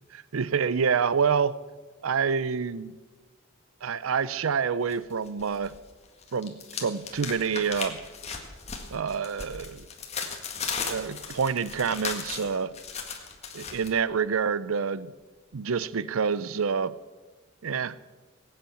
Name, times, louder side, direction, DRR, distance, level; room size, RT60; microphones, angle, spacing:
voice 1, 0.1-1.6 2.0-2.9 3.8-5.7 6.3-8.0 8.9-9.9 10.9-12.7 13.5-15.1 15.5-16.9 17.6-17.9, right 6 dB, 80° right, 18 dB, 0.5 m, -27 dB
sound 1, 4.9-5.8 6.1-13.9, left 5 dB, 30° left, 1.8 m, -36 dB
20.5 x 8.7 x 7.1 m, 1.3 s
head